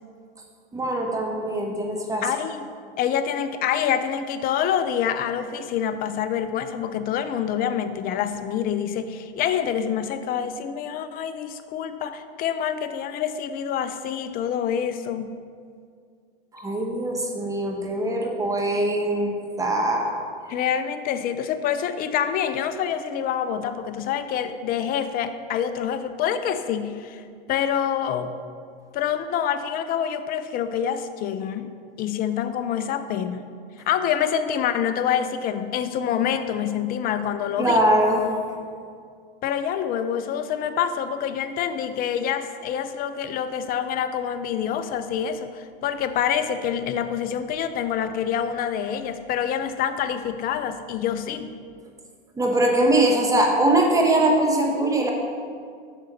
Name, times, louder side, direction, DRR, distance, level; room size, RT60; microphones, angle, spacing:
voice 1, 0.7-2.2 16.5-20.1 37.6-38.3 52.4-55.1, right 1 dB, 10° right, 0 dB, 1.1 m, -22 dB
voice 2, 2.2-2.7 3.0-15.3 20.5-28.3 28.9-33.4 33.9-37.8 39.4-51.5, left 8 dB, 30° left, 11 dB, 0.5 m, -26 dB
8.0 x 6.1 x 4.3 m, 2.2 s
hypercardioid pair, 110°, 29 cm